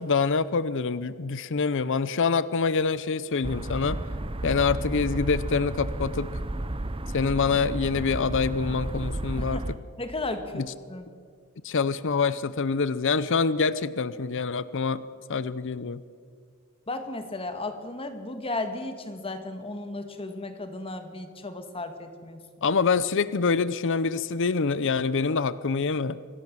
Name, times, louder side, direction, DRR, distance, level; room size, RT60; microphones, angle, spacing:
voice 1, 0.0-4.0 4.4-6.3 7.1-9.7 10.6-10.7 11.6-15.0 15.3-16.0 22.6-26.2, left 5 dB, 60° left, 16 dB, 0.7 m, -25 dB
sound 1, 3.4-9.7, right 1 dB, 25° right, 0.8 m, -32 dB
voice 2, 9.4-9.7 10.0-11.1 16.9-22.4, left 2 dB, 25° left, 7 dB, 1.7 m, -35 dB
25.5 x 17.5 x 7.5 m, 2.1 s
head